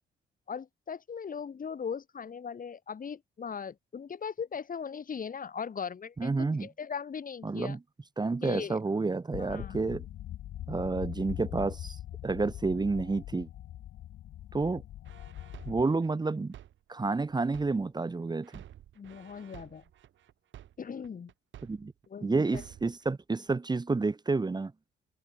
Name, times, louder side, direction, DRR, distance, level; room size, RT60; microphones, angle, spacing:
voice 1, 0.5-7.8 8.4-8.8 9.4-9.8 18.9-19.8 20.8-21.3 22.1-22.6, left 6 dB, 45° left, 4.8 m, -39 dB
voice 2, 6.2-6.7 7.4-7.8 8.2-10.0 10.7-13.5 14.5-14.8 15.6-16.5 16.9-18.6 21.7-21.9 22.2-24.7, right 3 dB, 20° right, 1.3 m, -30 dB
sound 1, 9.3-15.8, left 12 dB, 70° left, 1.0 m, -42 dB
sound 2, 15.1-18.1 18.4-22.1 22.4-23.0, right 11 dB, 70° right, 2.7 m, -51 dB
cardioid pair, 90°, 20 cm